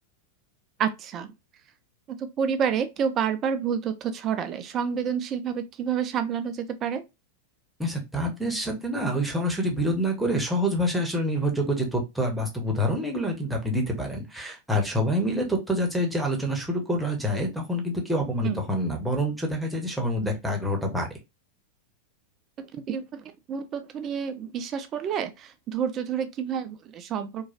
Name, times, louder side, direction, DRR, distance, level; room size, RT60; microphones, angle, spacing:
voice 1, 0.8-1.3 2.2-7.0 18.4-18.6 22.6-27.5, right 7 dB, 30° right, 0.4 m, -29 dB
voice 2, 7.8-21.1, equal, 5° right, 0.8 m, -27 dB
3.0 x 2.2 x 2.5 m
figure-of-eight pair, 90°, 0 cm